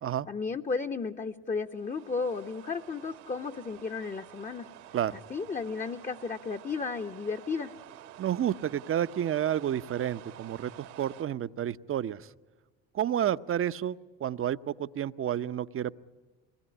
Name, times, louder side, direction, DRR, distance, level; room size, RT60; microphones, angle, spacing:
voice 1, 0.3-4.7 5.1-7.7, left 4 dB, 25° left, 8 dB, 0.9 m, -34 dB
sound 1, 1.7-11.2, right 12 dB, 80° right, 1.9 m, -50 dB
voice 2, 8.2-12.3 12.9-15.9, right 10 dB, 40° right, 15 dB, 0.7 m, -30 dB
24.0 x 18.5 x 9.8 m, 1.3 s
supercardioid pair, 70°, 33 cm